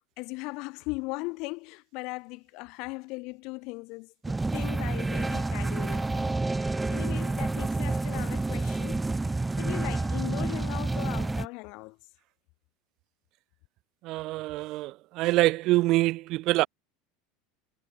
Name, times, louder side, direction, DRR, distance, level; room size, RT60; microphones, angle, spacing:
voice 1, 0.2-9.0 9.6-12.0, left 26 dB, 60° left, 6.2 m, -38 dB
sound 1, 4.2-11.5, right 2 dB, 10° right, 4.1 m, -29 dB
voice 2, 14.0-16.7, right 19 dB, 55° right, 0.4 m, -25 dB
hypercardioid pair, 85°, 0 cm